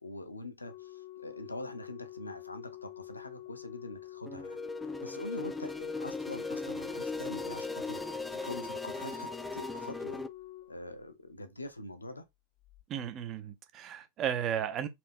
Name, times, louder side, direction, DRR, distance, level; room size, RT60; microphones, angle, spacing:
voice 1, 0.0-4.6 5.0-8.0 8.4-10.2 10.7-12.3, left 2 dB, 80° left, 0.6 m, -44 dB
Organ, 0.6-11.5 12.6-12.8, left 15 dB, 40° left, 0.7 m, -48 dB
sound 1, 4.3-10.3, left 3 dB, 5° left, 0.3 m, -38 dB
voice 2, 12.9-14.9, right 9 dB, 35° right, 0.6 m, -34 dB
4.3 x 2.8 x 2.6 m
figure-of-eight pair, 90°, 0 cm